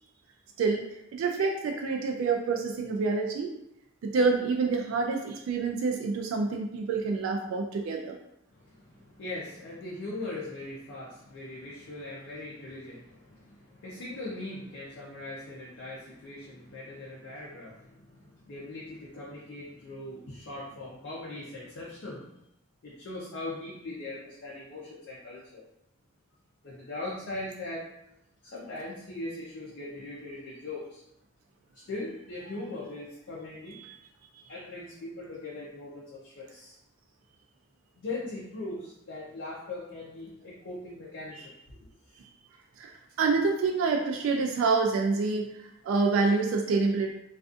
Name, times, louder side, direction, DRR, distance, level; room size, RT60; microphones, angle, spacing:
voice 1, 1.1-3.5 4.0-8.2 33.8-34.0 42.8-42.9 43.2-47.1, right 4 dB, 85° right, 3 dB, 0.3 m, -27 dB
voice 2, 8.5-22.3 22.8-25.6 26.6-27.9 28.4-31.0 31.7-33.8 34.5-36.8 38.0-42.2, left 2 dB, 65° left, -5 dB, 0.5 m, -40 dB
2.4 x 2.4 x 2.4 m, 0.80 s
head